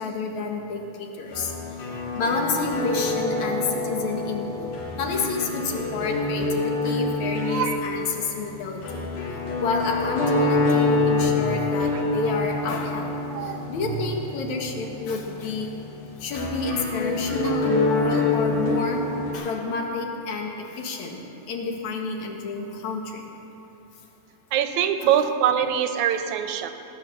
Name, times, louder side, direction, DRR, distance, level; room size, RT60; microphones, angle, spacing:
voice 1, 0.0-1.5 1.8-4.7 5.0-9.1 9.6-13.1 13.4-15.7 16.2-19.0 19.3-21.2 21.5-23.2, left 3 dB, 70° left, 1 dB, 2.8 m, -29 dB
sound 1, 1.3-19.3, left 3 dB, 90° left, 3.7 m, -26 dB
voice 2, 3.0-3.9 7.2-7.8 11.9-12.0 13.3-13.6 16.7-17.6 24.5-26.7, right 9 dB, 80° right, 8 dB, 2.1 m, -26 dB
18.5 x 9.8 x 6.6 m, 3.0 s
omnidirectional pair, 3.5 m